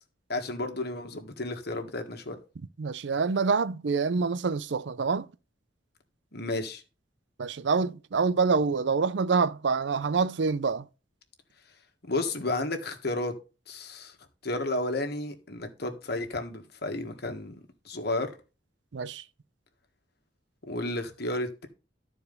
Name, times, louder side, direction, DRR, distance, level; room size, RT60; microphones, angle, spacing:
voice 1, 0.3-2.4 6.3-6.8 12.1-13.3 13.7-14.1 14.4-17.6 17.8-18.3 20.7-21.7, left 2 dB, 60° left, 1.6 m, -32 dB
voice 2, 2.8-5.3 7.4-10.9 18.9-19.2, right 5 dB, 70° right, 0.5 m, -26 dB
13.0 x 4.6 x 5.3 m
head